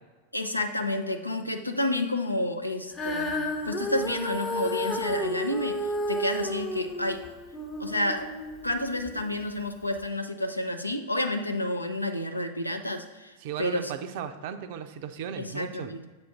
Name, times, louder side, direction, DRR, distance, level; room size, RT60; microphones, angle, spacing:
voice 1, 0.3-7.2 7.8-8.3 8.6-13.9 15.4-16.1, left 1 dB, 85° left, 6 dB, 0.5 m, -30 dB
Female singing, 2.9-9.3 10.0-10.1, left 1 dB, 25° left, 0.8 m, -32 dB
voice 2, 13.4-15.9, right 8 dB, 50° right, 9 dB, 0.4 m, -36 dB
7.3 x 2.5 x 5.8 m, 1.3 s
figure-of-eight pair, 90°, 0 cm